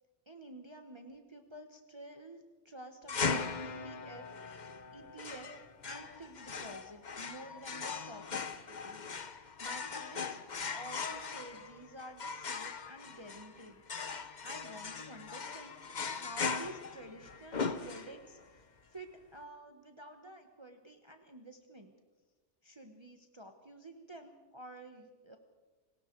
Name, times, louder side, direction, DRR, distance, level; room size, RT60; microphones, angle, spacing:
voice 1, 0.3-4.3 4.9-10.4 10.7-13.8 14.4-18.6 18.9-21.9 22.6-25.4, right 1 dB, 25° right, 5 dB, 1.3 m, -50 dB
sound 1, 3.1-18.4, left 5 dB, 40° left, 1.0 m, -39 dB
29.0 x 19.0 x 4.7 m, 1.2 s
omnidirectional pair, 1.2 m